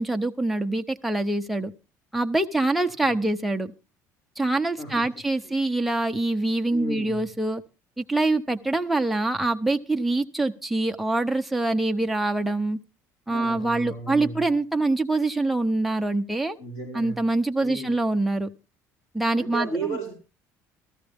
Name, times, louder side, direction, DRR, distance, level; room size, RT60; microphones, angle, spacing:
voice 1, 0.0-1.7 2.1-3.7 4.4-7.6 8.0-12.8 13.3-16.6 16.9-18.5 19.1-20.0, right 2 dB, ahead, 4 dB, 0.7 m, -25 dB
voice 2, 2.8-3.1 4.8-5.1 5.4-5.5 6.7-7.3 13.3-14.5 16.6-17.2 17.6-18.0 19.4-20.1, right 2 dB, 60° left, 0 dB, 4.9 m, -34 dB
15.0 x 14.0 x 3.5 m, 0.31 s
cardioid pair, 165°, 6 cm